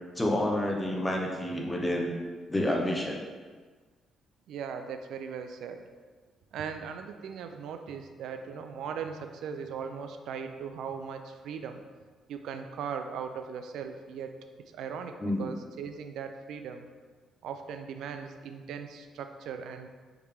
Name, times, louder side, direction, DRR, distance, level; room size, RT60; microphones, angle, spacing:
voice 1, 0.2-2.1 2.5-3.2 15.2-15.5, left 1 dB, 10° left, 0 dB, 0.7 m, -29 dB
voice 2, 4.5-5.8 6.5-11.8 12.3-14.4 14.7-16.9 17.4-19.9, right 6 dB, 80° right, 7 dB, 0.3 m, -39 dB
4.8 x 3.2 x 3.5 m, 1.4 s
cardioid pair, 130°, 0 cm